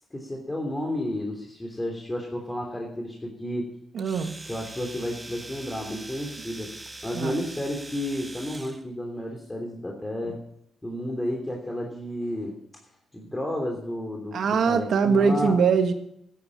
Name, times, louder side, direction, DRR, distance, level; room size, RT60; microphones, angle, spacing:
voice 1, 0.1-3.7 4.5-6.7 7.0-10.4 10.8-12.6 13.1-15.6, left 1 dB, 15° left, 1 dB, 3.0 m, -31 dB
voice 2, 3.9-4.4 7.1-7.4 14.3-15.9, right 5 dB, 70° right, 6 dB, 1.7 m, -22 dB
Domestic sounds home sounds, 4.0-8.8, right 2 dB, 20° right, 1.7 m, -42 dB
13.0 x 10.5 x 7.1 m, 0.72 s
cardioid pair, 75°, 0 cm